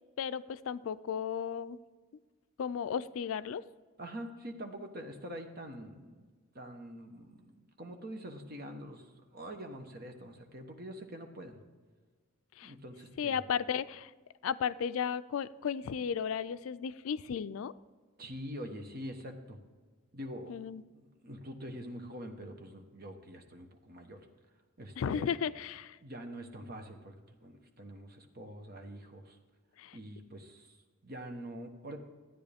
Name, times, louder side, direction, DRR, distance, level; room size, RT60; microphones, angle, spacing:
voice 1, 0.2-1.8 2.6-3.6 12.6-12.7 13.2-14.1 14.4-17.7 20.5-20.8 25.0-26.0 29.8-30.0, left 7 dB, 75° left, 15 dB, 0.4 m, -34 dB
voice 2, 4.0-6.3 6.5-11.6 12.6-13.4 18.2-19.6 20.1-20.6 20.9-24.2 24.8-25.3 26.0-29.4 29.9-30.8 31.0-32.0, equal, 45° right, 4 dB, 1.2 m, -45 dB
13.5 x 9.4 x 3.5 m, 1.4 s
head